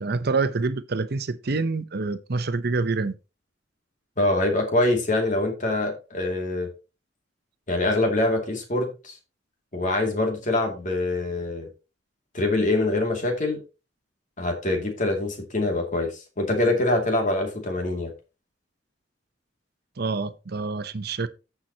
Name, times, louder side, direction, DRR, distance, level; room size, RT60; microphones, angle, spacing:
voice 1, 0.0-3.1 20.0-21.3, right 3 dB, 60° right, 0.7 m, -26 dB
voice 2, 4.2-6.7 7.7-9.2 9.7-11.7 12.3-13.6 14.4-16.1 16.4-18.1, left 2 dB, 45° left, 2.4 m, -24 dB
14.0 x 5.8 x 2.8 m
head